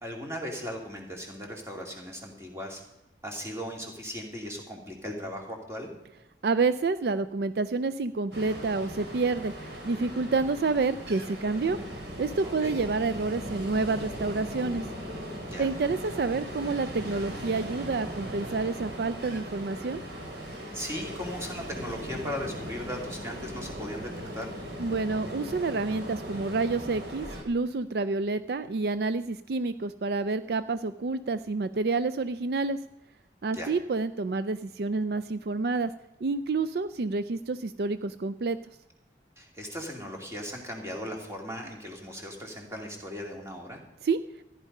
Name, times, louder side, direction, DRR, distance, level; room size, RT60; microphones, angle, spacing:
voice 1, 0.0-2.8 3.2-5.9 12.4-12.8 15.4-15.7 20.7-24.5 33.5-33.7 39.4-43.8, equal, 15° right, 1 dB, 2.5 m, -38 dB
voice 2, 6.4-9.5 9.8-11.8 12.2-14.8 15.6-20.0 24.8-32.8 33.4-35.9 36.2-38.6 44.0-44.2, right 3 dB, 65° right, 12 dB, 0.4 m, -28 dB
Ocean, 8.3-27.4, equal, 80° right, 3.2 m, -38 dB
14.5 x 11.0 x 5.4 m, 0.95 s
head